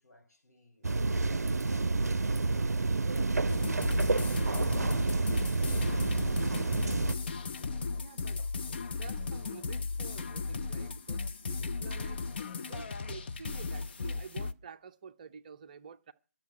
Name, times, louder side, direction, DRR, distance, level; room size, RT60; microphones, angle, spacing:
voice 1, 0.0-2.5 3.0-6.1 6.5-7.3 7.6-8.5, left 2 dB, 80° left, 4.6 m, -57 dB
sound 1, 0.8-7.1, right 3 dB, 70° right, 0.5 m, -29 dB
sound 2, 3.5-14.5, left 4 dB, 40° left, 0.7 m, -36 dB
voice 2, 7.9-8.4 8.9-12.2 12.6-16.1, right 6 dB, 30° right, 0.6 m, -49 dB
12.0 x 6.9 x 8.5 m
figure-of-eight pair, 150°, 9 cm